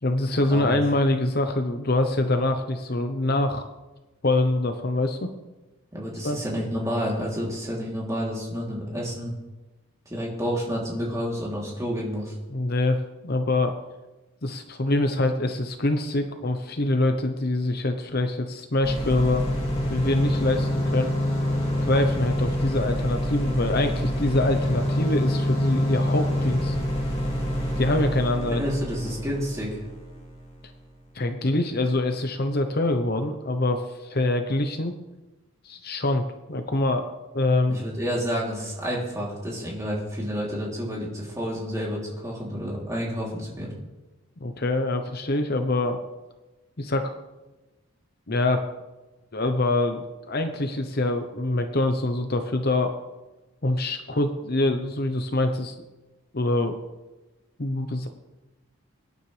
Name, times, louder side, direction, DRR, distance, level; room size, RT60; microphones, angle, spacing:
voice 1, 0.0-3.6 4.2-5.3 6.2-6.4 12.5-13.0 13.2-13.7 14.4-19.4 19.9-21.1 21.9-26.8 27.7-28.6 31.1-35.0 35.6-37.8 44.4-46.0 46.8-47.1 48.3-48.6 49.3-52.9 53.6-55.8 56.3-56.7 57.6-58.1, left 2 dB, 45° left, 6 dB, 0.8 m, -25 dB
voice 2, 5.9-9.3 10.0-12.3 28.5-29.8 37.7-43.7, equal, 15° right, -4 dB, 3.1 m, -30 dB
sound 1, 18.8-30.7, equal, 25° left, 2.4 m, -27 dB
23.5 x 9.8 x 3.4 m, 1.1 s
head